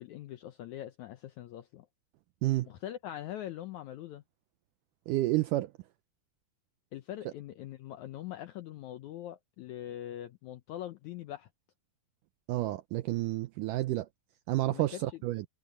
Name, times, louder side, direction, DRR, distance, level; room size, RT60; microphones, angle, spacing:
voice 1, 0.0-1.9 2.6-4.2 6.9-11.5 14.7-15.2, left 12 dB, 85° left, 1.7 m, -42 dB
voice 2, 5.1-5.7 12.5-14.1 14.5-15.5, right 17 dB, 85° right, 1.9 m, -30 dB
omnidirectional pair, 4.3 m